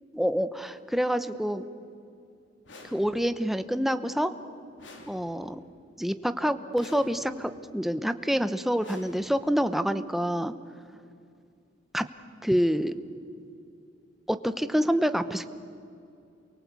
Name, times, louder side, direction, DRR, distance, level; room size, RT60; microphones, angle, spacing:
voice 1, 0.1-1.7 2.9-4.3 5.1-5.6 6.0-10.5 11.9-12.1 12.4-12.9 14.3-15.5, equal, ahead, 10 dB, 0.9 m, -27 dB
sound 1, 2.6-3.5 4.8-5.7 6.7-7.6 8.8-9.7, left 2 dB, 80° left, 3.4 m, -50 dB
29.0 x 23.5 x 8.3 m, 2.5 s
head